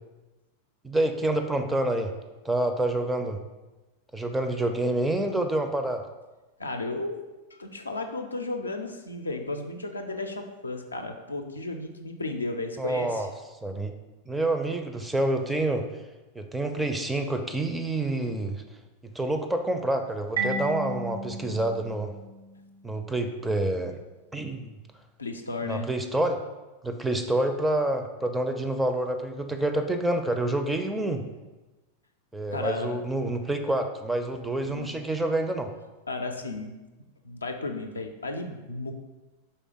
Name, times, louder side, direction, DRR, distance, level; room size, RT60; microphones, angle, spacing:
voice 1, 0.8-2.1 2.4-3.4 4.1-6.0 12.8-13.3 13.6-13.9 14.3-15.8 16.3-18.6 19.0-22.1 22.8-24.0 24.3-24.7 25.6-26.4 26.8-31.2 32.3-35.7, right 1 dB, 5° right, 6 dB, 0.4 m, -27 dB
voice 2, 6.6-7.2 7.5-13.3 25.2-25.9 32.5-33.0 34.6-34.9 36.1-36.7 37.2-38.9, left 2 dB, 80° left, 4 dB, 0.4 m, -34 dB
Marimba xylophone, 20.4-23.0, right 2 dB, 70° right, 0.7 m, -34 dB
4.1 x 3.4 x 3.8 m, 1.1 s
figure-of-eight pair, 90°, 0 cm